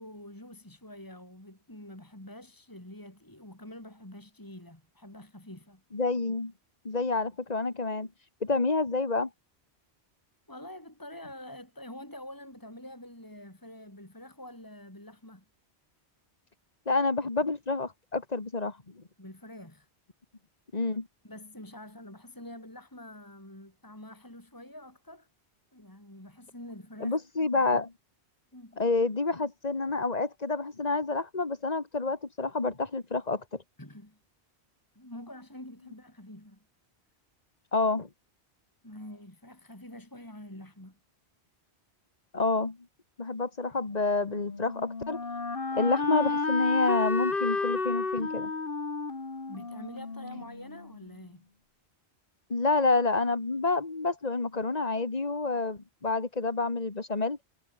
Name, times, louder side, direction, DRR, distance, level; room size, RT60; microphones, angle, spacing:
voice 1, 0.0-5.8 10.5-15.4 19.2-19.9 21.2-25.3 25.7-27.2 28.5-28.8 33.8-34.2 34.9-36.6 38.8-41.0 48.2-48.3 49.5-51.5, left 1 dB, 20° left, 3.8 m, -46 dB
voice 2, 5.9-6.5 6.8-8.1 8.4-9.3 16.9-19.0 20.7-21.1 27.0-27.9 28.8-33.6 37.7-38.1 42.3-42.8 43.2-45.2 45.7-48.5 52.5-57.4, left 3 dB, 35° left, 2.1 m, -28 dB
Wind instrument woodwind instrument, 44.2-51.0, left 3 dB, 55° left, 2.3 m, -32 dB
omnidirectional pair, 1.1 m